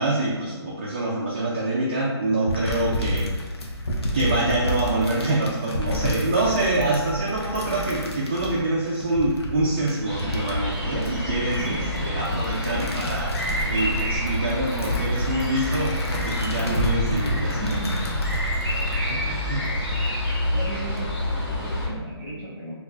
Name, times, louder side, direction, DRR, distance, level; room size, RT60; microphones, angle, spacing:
voice 1, 0.0-3.3 4.1-11.8 12.0-17.7 19.1-19.7, right 2 dB, 25° right, -5 dB, 0.3 m, -26 dB
sound 1, 2.5-20.1 20.6-21.0, equal, 70° left, 0.7 m, -31 dB
sound 2, 10.1-21.9, left 1 dB, 50° left, 1.3 m, -27 dB
voice 2, 11.3-12.4 12.7-13.0 17.6-18.1 20.5-22.7, right 1 dB, ahead, -9 dB, 1.2 m, -35 dB
4.1 x 2.4 x 2.4 m, 1.3 s
hypercardioid pair, 160°, 14 cm